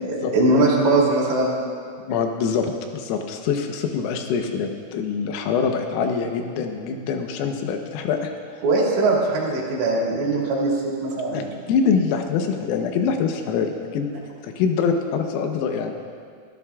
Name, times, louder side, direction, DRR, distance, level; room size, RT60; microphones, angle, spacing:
voice 1, 0.0-1.5 8.6-11.5, right 2 dB, 65° right, -4 dB, 4.2 m, -21 dB
voice 2, 2.1-8.3 11.3-11.4 11.7-14.1 14.4-15.9, left 6 dB, 85° left, 4 dB, 3.7 m, -24 dB
23.5 x 13.5 x 2.4 m, 2.2 s
omnidirectional pair, 5.9 m